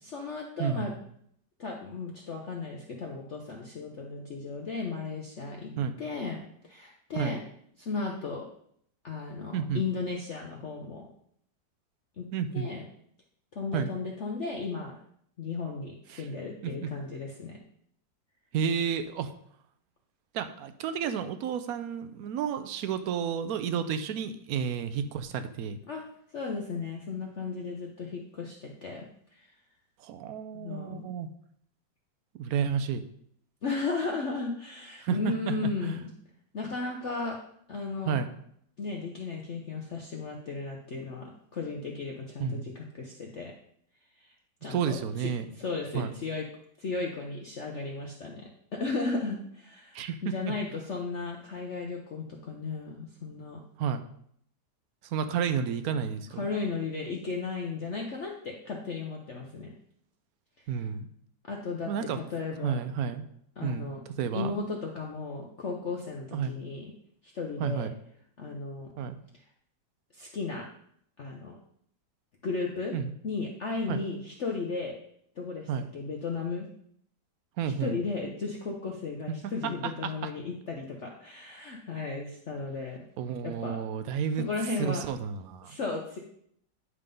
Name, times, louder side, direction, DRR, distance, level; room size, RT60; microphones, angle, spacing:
voice 1, 0.0-0.9 1.6-5.7 6.0-7.4 7.8-8.5 9.0-11.1 12.2-12.9 13.5-14.9 15.4-17.6 25.9-26.0 26.3-29.4 30.5-31.1 33.6-36.1 36.5-37.4 37.7-38.2 38.8-43.5 44.2-44.3 44.6-45.3 45.6-46.4 46.8-53.6 56.4-59.7 61.4-62.8 63.6-64.0 64.3-66.9 67.3-67.9 68.4-68.9 70.1-70.7 71.2-71.5 72.4-73.0 73.2-74.9 75.4-76.7 77.6-83.0 83.4-83.8 84.4-85.0 85.6-86.2, left 4 dB, 50° left, 0 dB, 0.9 m, -35 dB
voice 2, 0.6-0.9 5.8-5.9 7.1-7.4 9.5-9.8 12.3-12.7 13.7-13.9 16.1-16.3 16.6-16.9 18.5-19.3 20.3-25.8 30.0-31.3 32.3-33.0 35.0-36.0 38.1-38.3 42.4-42.6 44.7-45.5 45.9-46.1 49.9-50.5 53.8-54.0 55.0-56.5 60.7-61.1 61.9-62.2 62.6-63.2 63.6-63.9 64.2-64.5 66.3-66.6 67.6-67.9 69.0-69.2 72.9-73.1 73.9-74.0 75.7-75.9 77.6-78.0 79.6-80.3 83.2-84.4 84.8-85.7, right 7 dB, 70° right, 10 dB, 0.9 m, -31 dB
9.8 x 3.7 x 5.3 m, 0.67 s
omnidirectional pair, 2.1 m